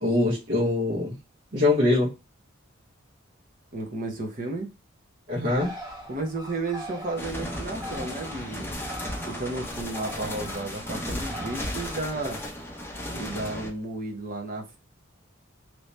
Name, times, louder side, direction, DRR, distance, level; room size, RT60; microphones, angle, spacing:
voice 1, 0.0-1.1 1.5-2.1 5.3-5.7, left 2 dB, 60° right, 1.4 m, -23 dB
voice 2, 3.7-4.7 6.1-8.7 9.2-12.4 13.1-14.8, right 2 dB, 45° right, 0.9 m, -33 dB
Bird, 5.5-12.9, equal, 20° right, 1.3 m, -42 dB
sound 1, 7.2-13.7, equal, 10° left, 0.7 m, -35 dB
3.1 x 2.7 x 3.2 m
head